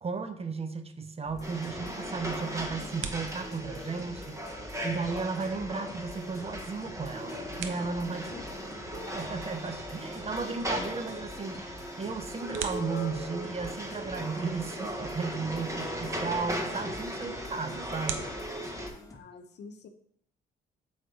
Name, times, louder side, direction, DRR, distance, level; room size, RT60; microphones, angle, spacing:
voice 1, 0.0-4.4 4.8-8.3 9.1-18.3, right 4 dB, 30° right, 8 dB, 0.6 m, -35 dB
sound 1, 1.2-19.2, left 2 dB, 15° left, 0.9 m, -48 dB
sound 2, 1.2-19.0, right 8 dB, 85° right, 0.6 m, -47 dB
sound 3, 1.4-18.9, equal, 15° right, 1.0 m, -37 dB
voice 2, 8.1-8.7 19.1-19.9, left 5 dB, 60° left, 7 dB, 0.8 m, -48 dB
7.3 x 3.5 x 3.9 m, 0.66 s
cardioid pair, 90°, 20 cm